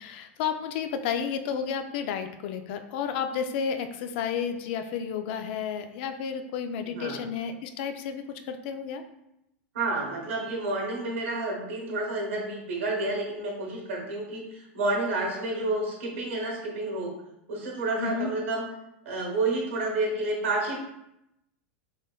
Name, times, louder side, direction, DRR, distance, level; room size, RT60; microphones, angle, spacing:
voice 1, 0.0-9.0 18.0-18.3, left 7 dB, 55° left, 7 dB, 0.4 m, -32 dB
voice 2, 6.9-7.2 9.7-17.1 17.5-18.6 19.0-20.8, right 2 dB, 85° right, 0 dB, 1.2 m, -30 dB
3.8 x 3.4 x 2.2 m, 0.84 s
supercardioid pair, 140°, 7 cm